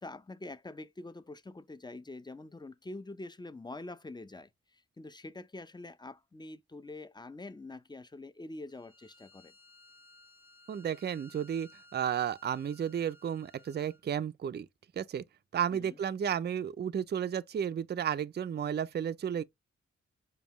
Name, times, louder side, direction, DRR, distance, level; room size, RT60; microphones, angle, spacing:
voice 1, 0.0-9.5 15.7-16.0, left 2 dB, 15° left, 0.5 m, -45 dB
Bowed string instrument, 8.7-14.1, left 1 dB, 45° left, 1.1 m, -59 dB
voice 2, 10.7-14.7 15.0-15.2 15.5-19.4, right 8 dB, 35° right, 0.4 m, -33 dB
5.3 x 2.3 x 2.9 m
cardioid pair, 45°, 29 cm